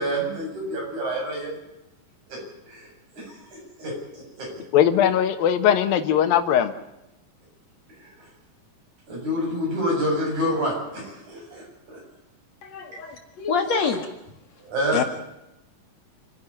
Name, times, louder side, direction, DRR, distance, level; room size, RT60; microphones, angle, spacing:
voice 1, 0.0-1.5 2.3-2.4 2.7-4.6 8.0-8.1 9.1-12.0 14.6-15.1, equal, 55° right, -1 dB, 9.3 m, -28 dB
voice 2, 4.7-6.7 14.9-15.0, left 9 dB, 90° left, 10 dB, 3.1 m, -19 dB
voice 3, 12.6-14.1 14.8-15.0, left 5 dB, 55° left, 5 dB, 2.8 m, -27 dB
28.0 x 11.0 x 9.9 m, 0.90 s
omnidirectional pair, 4.0 m